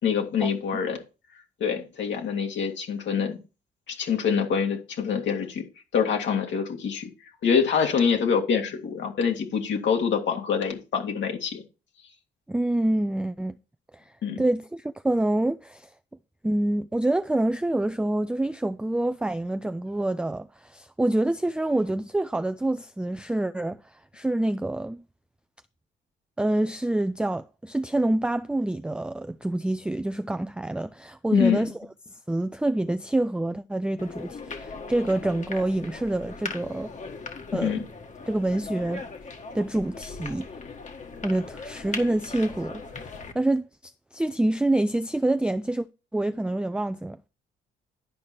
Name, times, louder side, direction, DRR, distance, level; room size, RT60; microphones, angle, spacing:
voice 1, 0.0-1.0 1.6-3.4 3.9-5.6 5.9-7.1 7.4-11.6 14.2-14.4 31.3-31.7 37.5-37.8, left 6 dB, 70° left, 2.2 m, -25 dB
voice 2, 12.5-13.5 13.9-14.0 14.4-15.9 16.4-25.0 26.4-31.7 32.3-36.9 37.5-37.8 38.3-39.0 39.5-40.5 41.2-42.8 43.3-45.9 46.1-47.2, right 1 dB, 5° right, 0.4 m, -26 dB
sound 1, 34.0-43.3, left 4 dB, 40° left, 1.6 m, -39 dB
11.5 x 4.9 x 4.4 m
cardioid pair, 90°, 20 cm